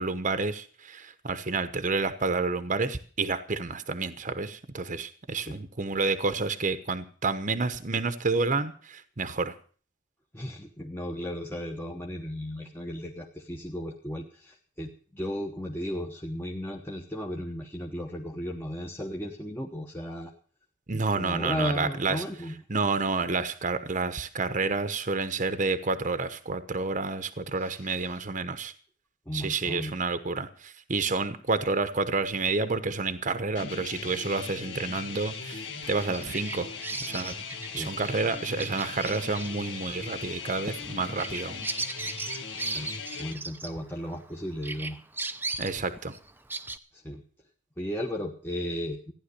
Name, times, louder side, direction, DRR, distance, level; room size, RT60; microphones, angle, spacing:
voice 1, 0.0-9.5 20.9-22.2 22.7-28.7 29.3-36.7 37.1-37.3 37.7-41.6 45.6-46.1, right 3 dB, 40° right, 10 dB, 1.0 m, -29 dB
voice 2, 10.3-20.3 20.9-22.5 27.6-28.1 29.3-29.9 37.8-37.9 42.7-42.9 43.2-45.0 46.9-47.2 47.8-49.1, equal, 10° left, -1 dB, 1.2 m, -35 dB
sound 1, 33.5-43.3, left 5 dB, 65° left, 2.0 m, -39 dB
Bird vocalization bird call bird song, 35.9-44.3 44.6-46.8, right 3 dB, 10° right, 0.7 m, -37 dB
15.0 x 10.5 x 6.7 m, 0.43 s
head